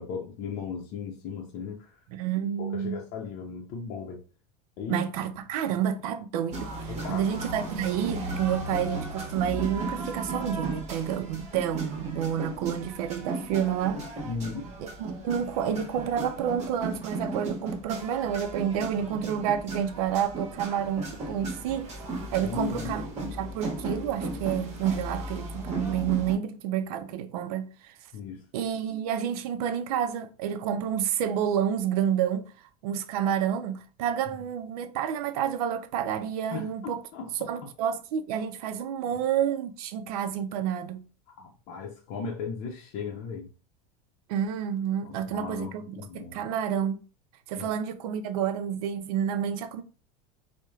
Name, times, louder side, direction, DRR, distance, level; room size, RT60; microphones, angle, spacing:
voice 1, 0.0-2.0 2.6-4.2 4.8-5.0 6.9-7.3 14.2-14.7 22.4-23.0 28.1-28.5 36.5-37.5 41.4-43.5 45.0-46.4 47.6-47.7, left 5 dB, 55° left, 0.6 m, -36 dB
voice 2, 2.1-3.0 4.9-14.0 14.8-21.9 22.3-28.0 28.5-37.0 37.5-41.1 44.3-47.0 47.5-49.8, right 9 dB, 75° right, 0.5 m, -29 dB
sound 1, 6.5-26.4, right 2 dB, 35° right, 1.0 m, -36 dB
3.0 x 2.1 x 2.3 m
supercardioid pair, 105°, 19 cm